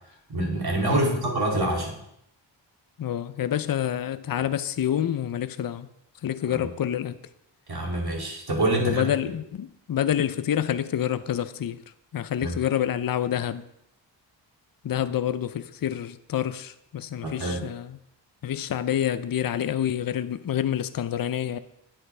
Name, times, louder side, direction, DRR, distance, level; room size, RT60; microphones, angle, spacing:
voice 1, 0.3-2.0 6.5-6.7 7.7-9.1 12.4-12.5 17.2-17.6, right 2 dB, 55° right, 2.7 m, -26 dB
voice 2, 0.9-1.2 3.0-5.9 6.2-7.2 8.8-11.8 12.1-13.7 14.8-18.0 18.4-21.6, left 10 dB, 50° left, 0.6 m, -27 dB
9.6 x 8.0 x 3.3 m
cardioid pair, 60°, 46 cm